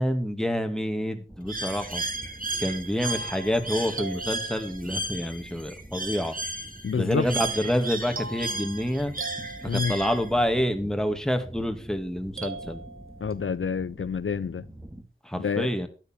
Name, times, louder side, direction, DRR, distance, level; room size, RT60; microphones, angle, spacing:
voice 1, 0.0-2.0 2.6-6.4 6.9-9.1 9.6-12.8 15.2-15.9, equal, 5° left, 2.3 m, -27 dB
sound 1, 1.3-15.0, right 1 dB, 15° right, 2.4 m, -46 dB
Bird, 1.5-10.5, right 2 dB, 40° right, 2.3 m, -34 dB
sound 2, 2.5-5.0 7.1-10.3 12.4-13.6, right 3 dB, 80° right, 1.5 m, -41 dB
voice 2, 6.8-7.2 9.7-9.9 13.2-14.6 15.4-15.7, left 6 dB, 75° left, 0.5 m, -28 dB
12.0 x 9.9 x 4.6 m
wide cardioid pair, 45°, 21 cm